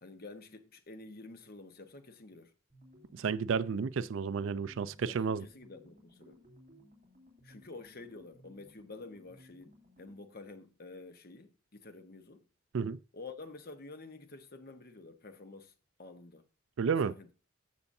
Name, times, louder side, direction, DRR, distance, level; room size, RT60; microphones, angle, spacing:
voice 1, 0.0-2.5 5.1-6.4 7.4-12.4 13.1-15.7 16.0-16.4 17.0-17.3, left 3 dB, 45° left, 1.1 m, -49 dB
sound 1, 2.7-10.4, left 1 dB, 40° right, 2.9 m, -60 dB
voice 2, 3.1-5.4 12.7-13.0 16.8-17.1, right 6 dB, 60° right, 0.4 m, -31 dB
14.0 x 6.9 x 2.7 m
head